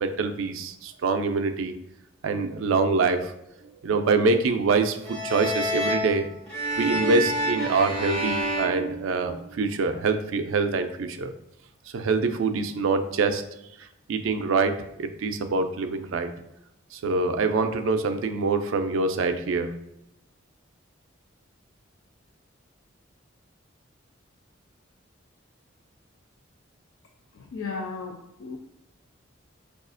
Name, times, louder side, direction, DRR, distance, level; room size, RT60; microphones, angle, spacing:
voice 1, 0.0-1.7 2.2-3.3 3.8-6.3 6.8-11.3 11.9-13.4 14.1-16.3 16.9-19.7, right 4 dB, 80° right, 0.4 m, -25 dB
sound 1, 5.0-9.7, right 1 dB, 5° left, 1.0 m, -29 dB
voice 2, 27.3-28.6, left 4 dB, 75° left, 0.4 m, -35 dB
4.8 x 2.3 x 2.4 m
head